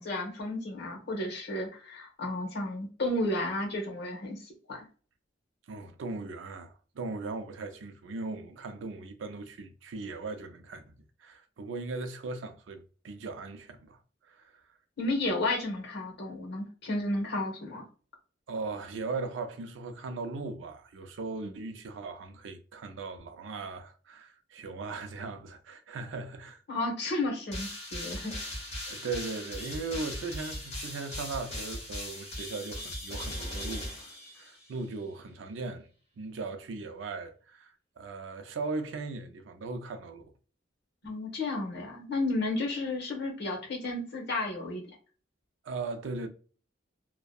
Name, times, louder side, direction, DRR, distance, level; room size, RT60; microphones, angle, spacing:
voice 1, 0.0-4.9 15.0-17.8 26.7-28.3 41.0-45.0, left 2 dB, 60° left, 0.9 m, -32 dB
voice 2, 5.7-11.0 11.2-14.0 14.3-14.5 18.5-26.6 28.9-35.9 36.2-40.2 45.6-46.3, right 3 dB, 80° right, 0.4 m, -38 dB
sound 1, 27.5-34.8, left 1 dB, 35° left, 1.0 m, -39 dB
2.7 x 2.1 x 2.3 m
head